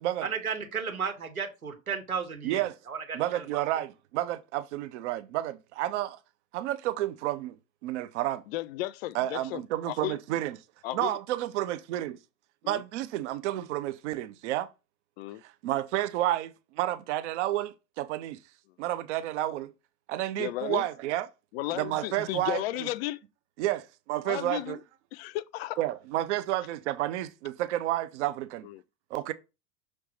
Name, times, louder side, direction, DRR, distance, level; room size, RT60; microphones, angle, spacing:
voice 1, 0.2-3.6, right 6 dB, 80° right, 1.8 m, -34 dB
voice 2, 2.4-2.7 3.1-6.2 6.5-7.6 7.8-8.4 9.1-10.6 10.9-12.2 12.7-14.7 15.4-18.4 18.8-19.7 20.1-21.3 21.7-22.6 23.6-24.8 25.8-28.7 29.1-29.3, right 14 dB, 55° right, 0.8 m, -30 dB
voice 3, 8.5-10.2 10.8-11.2 12.6-12.8 15.2-15.4 20.4-20.8 21.5-23.2 24.2-24.8 25.1-25.8 28.6-28.8, left 16 dB, 45° left, 0.5 m, -34 dB
6.3 x 3.4 x 5.3 m
figure-of-eight pair, 85°, 42 cm